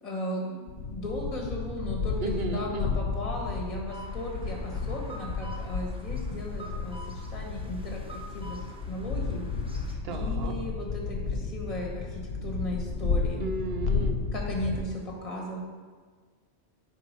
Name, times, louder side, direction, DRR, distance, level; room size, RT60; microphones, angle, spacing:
voice 1, 0.0-8.6 8.9-9.5 9.7-13.5 14.3-15.6, left 1 dB, 30° left, -1 dB, 1.6 m, -36 dB
sound 1, 0.7-14.8, left 4 dB, 75° left, 1.2 m, -32 dB
voice 2, 2.2-2.9 10.0-10.5 13.4-14.2, right 2 dB, 60° right, 5 dB, 1.1 m, -34 dB
sound 2, 3.9-9.9, right 1 dB, 5° right, 0.7 m, -47 dB
9.7 x 5.2 x 5.3 m, 1.5 s
omnidirectional pair, 1.2 m